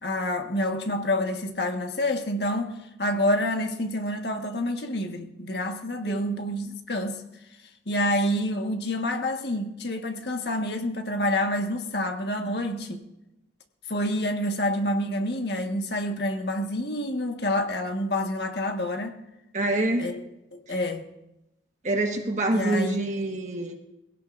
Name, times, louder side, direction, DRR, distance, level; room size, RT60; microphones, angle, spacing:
voice 1, 0.0-7.2 7.9-13.0 13.9-19.2 20.0-20.2 20.5-21.1 22.5-23.0, left 1 dB, 70° left, 4 dB, 1.5 m, -28 dB
voice 2, 19.5-20.1 21.8-23.8, right 2 dB, 40° right, 3 dB, 1.5 m, -26 dB
22.5 x 16.5 x 2.6 m, 0.91 s
head